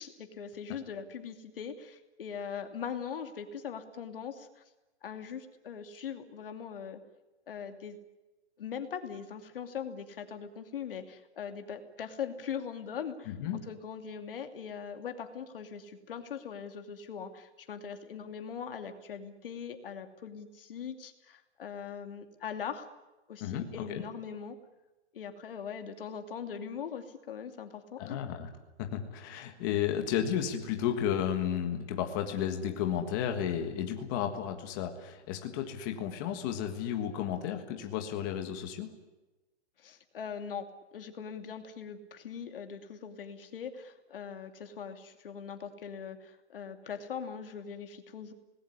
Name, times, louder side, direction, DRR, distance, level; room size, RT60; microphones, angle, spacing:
voice 1, 0.0-4.6 5.0-7.0 7.5-8.0 8.6-22.9 23.3-24.6 25.1-28.2 39.8-48.3, left 7 dB, 50° left, 7 dB, 2.6 m, -41 dB
voice 2, 13.3-13.6 23.4-24.0 28.0-28.5 28.8-38.9, left 9 dB, 20° left, 5 dB, 1.6 m, -33 dB
26.0 x 19.5 x 9.9 m, 1.1 s
hypercardioid pair, 180°, 34 cm